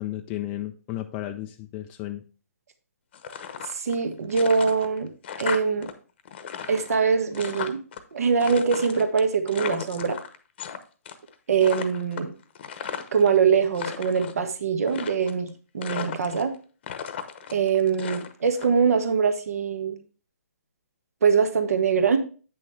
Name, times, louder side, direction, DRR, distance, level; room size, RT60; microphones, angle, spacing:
voice 1, 0.0-2.2, left 14 dB, 15° left, 4 dB, 0.4 m, -33 dB
sound 1, 3.1-4.0 4.3-5.9 6.2-8.0 8.4-10.8 11.0-11.3 11.6-13.3 13.6-14.4 14.9-15.5 15.8-16.5 16.8-18.7, left 8 dB, 40° left, 0.9 m, -35 dB
voice 2, 3.6-5.1 5.4-5.9 6.7-7.8 8.1-10.2 11.5-12.3 13.1-16.5 17.5-20.0 21.2-22.2, right 6 dB, 65° right, 8 dB, 1.3 m, -23 dB
8.8 x 6.3 x 3.3 m, 0.37 s
hypercardioid pair, 160°, 9 cm